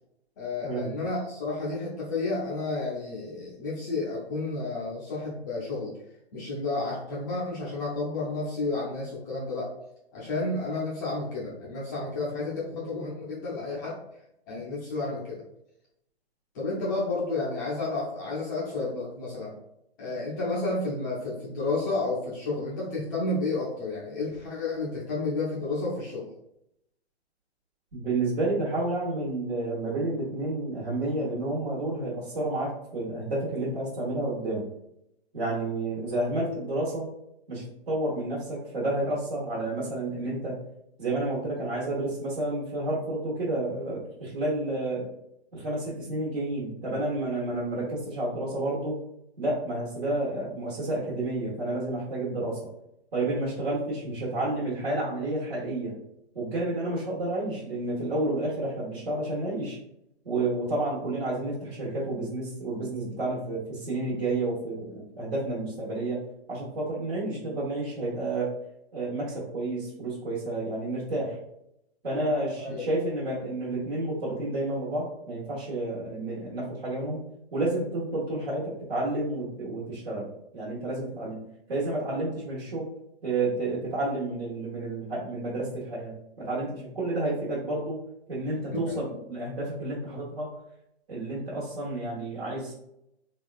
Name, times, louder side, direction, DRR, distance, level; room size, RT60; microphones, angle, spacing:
voice 1, 0.4-5.9 6.3-9.7 10.1-14.0 14.5-15.4 16.5-19.5 20.0-26.3 72.6-72.9 88.9-89.0, left 3 dB, 20° left, -6 dB, 0.4 m, -31 dB
voice 2, 27.9-34.6 35.3-37.1 37.5-40.6 41.0-45.1 45.5-49.0 49.4-52.6 53.1-55.9 56.3-59.8 60.2-66.2 66.5-68.5 68.9-71.4 72.0-77.2 77.5-81.4 81.7-82.9 83.2-88.0 88.3-90.5 91.1-92.7, right 2 dB, 65° right, -8 dB, 1.3 m, -30 dB
3.5 x 2.3 x 2.3 m, 0.80 s
hypercardioid pair, 135°, 32 cm